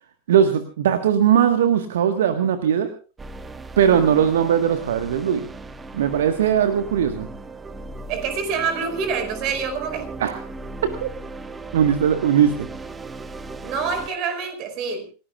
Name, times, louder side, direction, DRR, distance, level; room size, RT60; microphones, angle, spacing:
voice 1, 0.3-2.9 3.8-5.5 5.9-7.3 10.2-10.4 10.8-11.1 11.7-12.7, right 8 dB, 60° right, 9 dB, 1.5 m, -19 dB
sound 1, 3.2-14.1, right 2 dB, 15° right, 1.0 m, -37 dB
voice 2, 3.8-4.2 8.1-10.1 13.6-15.1, right 5 dB, 40° right, 7 dB, 5.1 m, -27 dB
28.5 x 18.0 x 2.4 m, 0.35 s
figure-of-eight pair, 90°, 0 cm